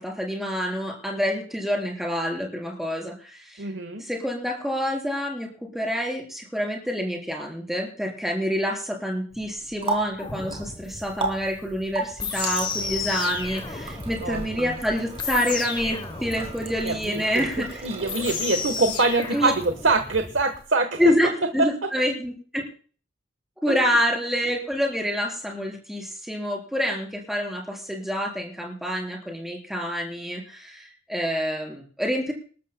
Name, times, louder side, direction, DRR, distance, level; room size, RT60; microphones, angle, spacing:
voice 1, 0.0-3.6 4.0-17.8 19.3-19.5 21.0-22.6 23.6-32.3, equal, ahead, -1 dB, 3.9 m, -27 dB
voice 2, 3.6-4.0 14.2-14.7 16.8-21.1 21.6-21.7 23.7-23.8, right 3 dB, 65° right, 7 dB, 1.2 m, -24 dB
Water tap faucet, 9.3-20.1, right 3 dB, 30° right, 2.8 m, -36 dB
sound 1, 10.2-20.6, left 5 dB, 25° left, 0.9 m, -34 dB
27.5 x 12.5 x 2.2 m, 0.42 s
head